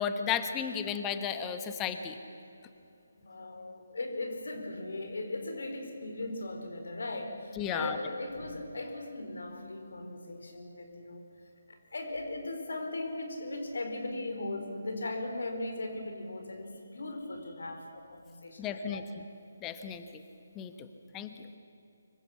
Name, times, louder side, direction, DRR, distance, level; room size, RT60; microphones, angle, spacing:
voice 1, 0.0-2.2 7.6-8.0 18.6-19.2 19.6-20.0 20.6-20.9 21.1-21.3, left 8 dB, 15° left, 8 dB, 1.2 m, -34 dB
voice 2, 3.2-11.3 11.7-19.0, left 2 dB, 60° left, 5 dB, 4.3 m, -38 dB
25.5 x 23.0 x 7.3 m, 2.8 s
figure-of-eight pair, 145°, 0 cm